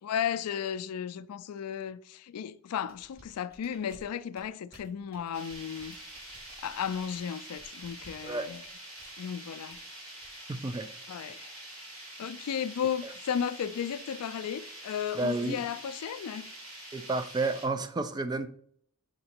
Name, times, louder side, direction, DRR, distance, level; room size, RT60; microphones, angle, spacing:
voice 1, 0.0-6.0 6.6-8.6 9.2-9.8 11.1-11.6 12.2-16.5, left 8 dB, 85° left, 0.4 m, -34 dB
sound 1, 2.9-9.2 9.7-9.9 10.2-10.4, equal, 45° right, 2.1 m, -56 dB
sound 2, 5.3-17.7, right 1 dB, 85° right, 2.8 m, -46 dB
voice 2, 10.5-10.9 13.0-13.1 15.2-15.6 16.9-18.5, right 3 dB, 20° right, 0.3 m, -31 dB
6.5 x 3.9 x 4.3 m
head